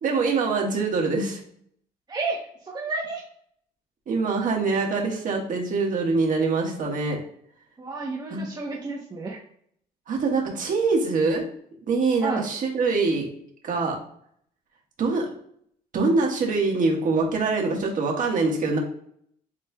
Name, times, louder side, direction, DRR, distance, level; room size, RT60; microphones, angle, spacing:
voice 1, 0.0-1.4 4.1-7.2 8.3-8.4 10.1-11.4 11.9-13.3 13.6-13.9 15.0-15.3 15.9-18.8, right 4 dB, 50° right, 1 dB, 1.5 m, -24 dB
voice 2, 2.1-3.2 4.6-4.8 7.8-9.4 12.2-12.4, right 3 dB, 25° right, -2 dB, 0.9 m, -31 dB
7.4 x 3.1 x 2.3 m, 0.66 s
cardioid pair, 110°, 17 cm